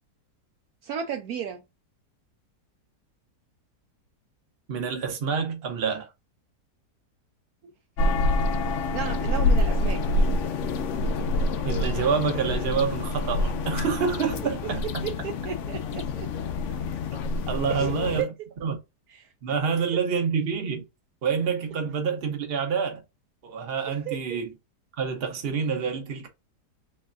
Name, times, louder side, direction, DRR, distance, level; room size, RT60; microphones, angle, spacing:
voice 1, 0.8-1.6 7.6-7.7 8.9-10.0 15.0-16.3 17.7-18.3 19.1-19.3 23.9-24.4, right 8 dB, 70° right, 1.0 m, -34 dB
voice 2, 4.7-6.1 11.6-15.0 17.5-18.3 18.6-18.8 19.4-20.8 21.2-23.0 23.4-24.5 25.0-26.3, right 6 dB, 45° right, 1.0 m, -27 dB
sound 1, 8.0-18.2, left 2 dB, 70° left, 0.7 m, -26 dB
3.4 x 3.2 x 2.5 m
omnidirectional pair, 1.8 m